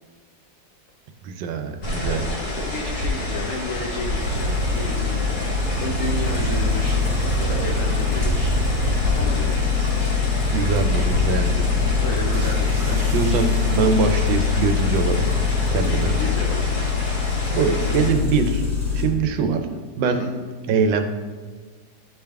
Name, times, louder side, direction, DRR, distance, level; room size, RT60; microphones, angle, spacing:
voice 1, 1.2-2.3 10.5-11.7 13.1-15.4 15.7-16.1 17.5-18.6 18.9-19.6 20.0-20.2 20.7-21.0, right 5 dB, 80° right, 6 dB, 1.3 m, -23 dB
sound 1, 1.8-18.1, left 1 dB, 35° left, 1.0 m, -29 dB
voice 2, 2.5-5.2 5.8-9.6 12.0-13.1 15.7-16.8 20.0-20.3, left 3 dB, 80° left, 1 dB, 0.7 m, -32 dB
sound 2, 4.2-19.0, left 4 dB, 50° left, 1.8 m, -23 dB
sound 3, 12.3-14.8, right 3 dB, 60° right, 0.6 m, -40 dB
9.9 x 3.4 x 3.4 m, 1.4 s
omnidirectional pair, 2.1 m